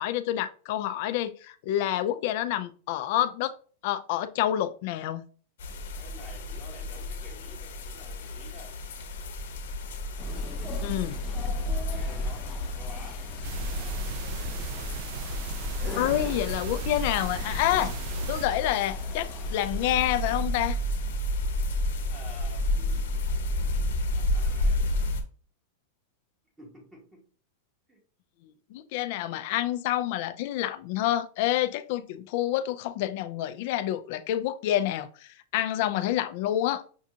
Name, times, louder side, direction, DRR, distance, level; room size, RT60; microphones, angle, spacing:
voice 1, 0.0-3.5 3.8-5.3 10.8-11.2 15.9-17.9 18.3-20.8 28.4-36.8, left 13 dB, 50° left, 0.4 m, -28 dB
sound 1, 5.6-25.2, left 1 dB, 85° left, 0.8 m, -31 dB
voice 2, 5.9-8.8 11.7-13.3 22.1-23.8 24.2-24.9 26.6-27.3 27.9-28.0, equal, 10° right, 1.0 m, -50 dB
sound 2, 10.2-20.4, left 2 dB, 10° left, 0.6 m, -43 dB
sound 3, 13.4-18.5, right 4 dB, 50° right, 0.4 m, -36 dB
6.0 x 2.4 x 2.7 m
supercardioid pair, 150°, 0 cm